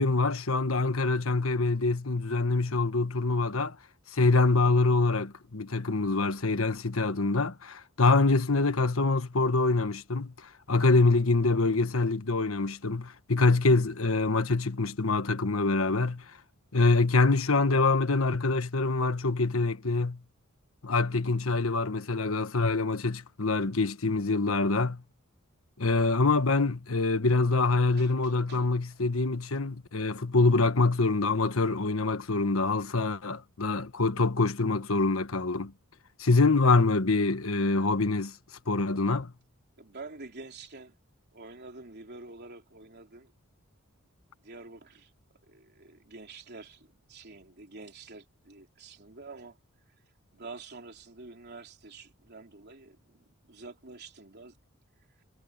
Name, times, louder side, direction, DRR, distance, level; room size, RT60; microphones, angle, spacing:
voice 1, 0.0-3.8 4.1-16.2 16.7-20.2 20.8-25.0 25.8-35.7 36.2-38.3 38.7-39.3, left 3 dB, 90° left, 1.4 m, -25 dB
voice 2, 13.4-13.7 28.0-29.0 29.5-29.6 32.7-32.8 39.8-40.9 41.3-43.3 44.4-45.1 45.4-49.6 49.9-50.0 50.3-54.6, right 3 dB, 55° right, 3.4 m, -48 dB
head